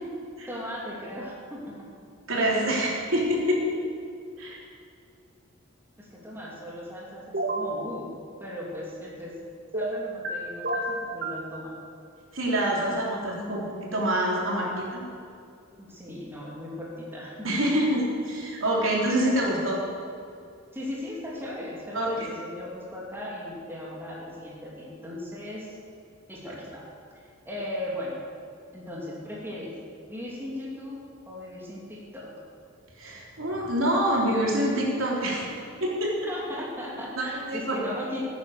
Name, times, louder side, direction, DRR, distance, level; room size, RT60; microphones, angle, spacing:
voice 1, 0.5-1.9 6.0-8.1 8.4-9.4 9.7-11.7 15.8-17.5 20.7-25.7 26.3-26.9 27.5-28.2 28.7-29.7 30.1-32.3 36.3-38.2, left 1 dB, 10° right, -4 dB, 2.7 m, -37 dB
voice 2, 2.3-3.6 4.4-4.6 12.3-13.6 13.9-15.0 17.4-19.8 21.9-22.3 33.0-35.4 35.8-36.2 37.2-37.8, right 1 dB, 75° right, -3 dB, 3.7 m, -26 dB
sound 1, 7.3-7.7 9.7-10.3 10.6-11.4, right 2 dB, 50° right, 2.1 m, -29 dB
16.0 x 9.4 x 6.8 m, 2.4 s
head